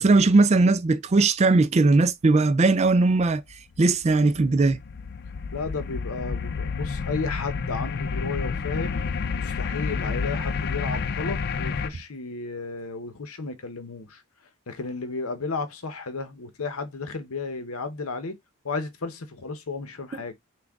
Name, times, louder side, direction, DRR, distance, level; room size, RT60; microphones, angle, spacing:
voice 1, 0.0-3.4 3.8-4.8, right 3 dB, 30° right, 0.3 m, -19 dB
sound 1, 3.5-11.9, left 5 dB, 45° left, 0.4 m, -30 dB
voice 2, 5.5-9.0 9.3-14.2 14.7-18.4 18.6-20.3, left 4 dB, 75° left, 0.8 m, -33 dB
6.0 x 2.3 x 3.5 m
head